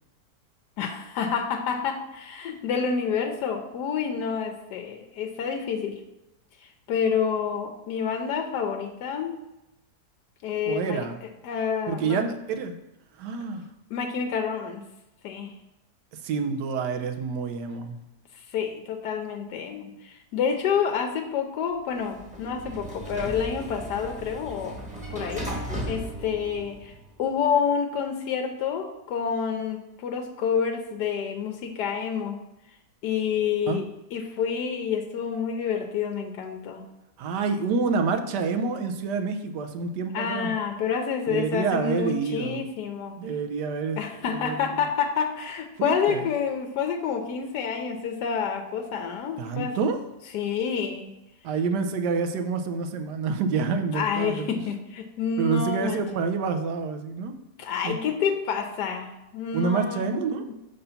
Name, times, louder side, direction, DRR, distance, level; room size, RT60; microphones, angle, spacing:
voice 1, 0.8-6.0 6.6-9.4 10.4-11.1 11.4-12.2 13.9-14.8 15.2-15.5 18.5-24.8 25.1-25.5 25.9-26.9 27.2-32.4 33.0-36.8 40.1-43.2 44.0-49.9 50.3-51.1 53.9-56.0 57.6-60.1, left 7 dB, 90° left, 4 dB, 1.2 m, -28 dB
voice 2, 10.7-11.2 11.9-12.8 13.2-13.6 16.1-18.0 33.7-33.8 37.2-40.5 41.3-42.7 43.2-44.7 45.8-46.3 49.4-50.0 51.4-54.5 55.4-57.3 57.8-58.0 59.5-60.4, right 5 dB, 90° right, 6 dB, 1.3 m, -28 dB
Sliding door, 21.9-27.1, right 1 dB, 5° right, 0.8 m, -36 dB
6.7 x 4.0 x 5.6 m, 0.92 s
omnidirectional pair, 1.7 m